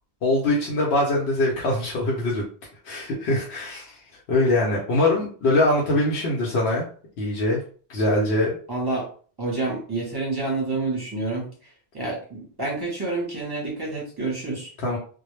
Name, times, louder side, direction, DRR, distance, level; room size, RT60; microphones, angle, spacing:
voice 1, 0.2-2.4 2.8-4.0 4.3-6.9 7.2-7.6 7.9-8.6 14.8-15.0, left 1 dB, 80° left, -3 dB, 0.9 m, -22 dB
voice 2, 8.7-9.1 9.4-11.5 11.9-14.7, right 3 dB, 25° right, -3 dB, 0.7 m, -28 dB
2.1 x 2.1 x 3.0 m, 0.42 s
omnidirectional pair, 1.1 m